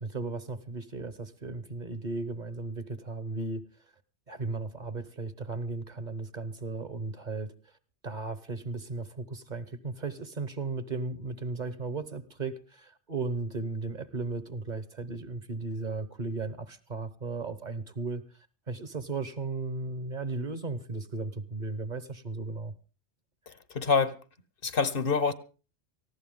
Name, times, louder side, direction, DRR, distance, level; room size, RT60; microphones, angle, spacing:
voice 1, 0.0-3.7 4.3-7.5 8.0-18.2 18.7-22.7, right 3 dB, 45° right, 1.1 m, -35 dB
voice 2, 23.5-24.1 24.6-25.3, left 5 dB, 55° left, 1.1 m, -26 dB
19.0 x 15.0 x 3.7 m
omnidirectional pair, 1.1 m